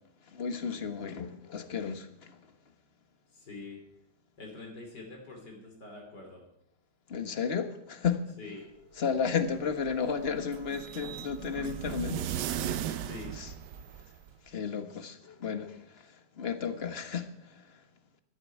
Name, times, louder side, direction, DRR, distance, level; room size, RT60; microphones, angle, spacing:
voice 1, 0.3-2.1 7.1-8.2 9.0-12.3 13.3-13.5 14.5-15.8 16.4-17.3, left 6 dB, 40° left, 1.3 m, -32 dB
voice 2, 3.3-3.8 4.4-6.4 8.4-8.6 13.0-13.4, left 3 dB, 85° left, 3.7 m, -45 dB
sound 1, 9.3-14.3, right 10 dB, 90° right, 1.4 m, -37 dB
12.5 x 10.5 x 8.7 m
omnidirectional pair, 1.8 m